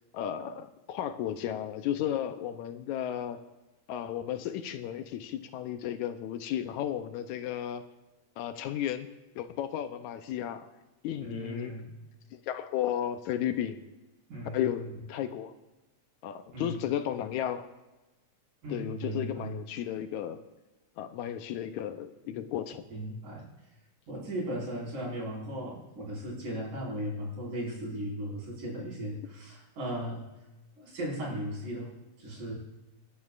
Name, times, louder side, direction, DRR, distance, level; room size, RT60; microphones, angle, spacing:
voice 1, 0.1-3.4 3.9-7.8 8.4-9.1 9.4-10.7 11.0-11.8 12.3-13.9 14.5-15.5 16.2-17.7 18.7-20.4 21.0-22.8, left 10 dB, 80° left, 8 dB, 2.1 m, -34 dB
voice 2, 11.2-11.9 14.3-15.0 16.5-16.7 18.6-19.6 22.2-22.4 22.9-23.4 24.1-30.3 30.8-31.9 32.2-32.5, right 1 dB, 90° right, -4 dB, 6.4 m, -37 dB
27.5 x 10.5 x 2.5 m, 1.1 s
omnidirectional pair, 3.4 m